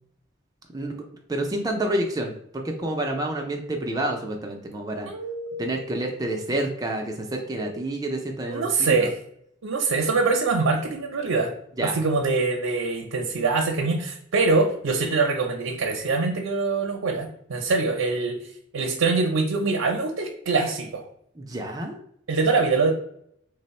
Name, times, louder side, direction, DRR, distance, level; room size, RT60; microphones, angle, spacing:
voice 1, 1.3-5.1 5.6-9.1 11.8-12.0 21.4-22.0, right 1 dB, 20° right, 2 dB, 0.4 m, -29 dB
voice 2, 5.1-5.8 7.6-7.8 8.5-9.2 9.6-11.5 11.8-21.1 22.3-22.9, right 3 dB, 90° right, 2 dB, 0.5 m, -24 dB
3.2 x 2.0 x 4.1 m, 0.69 s
head